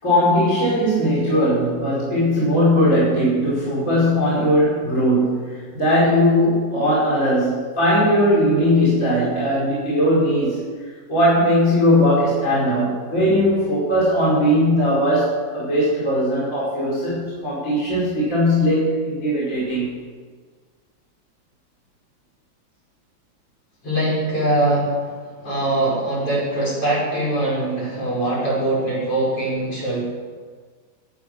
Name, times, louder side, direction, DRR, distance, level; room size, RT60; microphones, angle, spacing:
voice 1, 0.0-10.6 11.1-20.0, equal, 20° left, -8 dB, 5.0 m, -19 dB
voice 2, 23.8-30.0, right 1 dB, 35° left, -6 dB, 6.4 m, -22 dB
17.0 x 10.5 x 6.0 m, 1.5 s
omnidirectional pair, 4.5 m